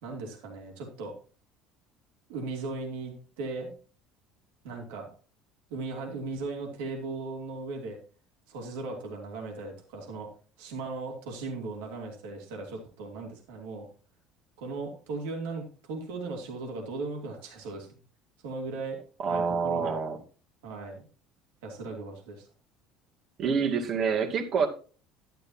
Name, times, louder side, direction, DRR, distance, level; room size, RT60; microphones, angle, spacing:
voice 1, 0.0-1.1 2.3-3.7 4.6-5.1 5.7-8.0 8.5-10.3 10.6-13.9 14.6-17.9 18.4-19.0 19.3-20.0 20.6-21.1 21.6-22.5, right 3 dB, 85° right, 1 dB, 2.9 m, -37 dB
voice 2, 19.2-20.2 23.4-24.7, right 5 dB, 50° right, 3 dB, 2.2 m, -27 dB
11.5 x 10.5 x 2.9 m, 0.39 s
supercardioid pair, 95°, 0 cm